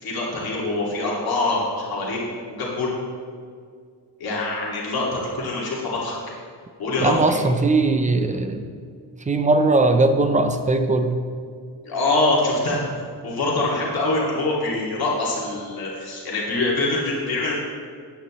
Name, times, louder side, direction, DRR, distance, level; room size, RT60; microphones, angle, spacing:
voice 1, 0.0-2.2 2.5-2.9 4.2-6.2 6.8-7.4 11.8-12.9 13.2-17.5, left 2 dB, 55° left, -5 dB, 2.6 m, -24 dB
voice 2, 7.0-8.6 9.2-11.1, right 2 dB, 15° right, 7 dB, 0.7 m, -19 dB
14.5 x 9.3 x 3.2 m, 2.1 s
wide cardioid pair, 150°, 44 cm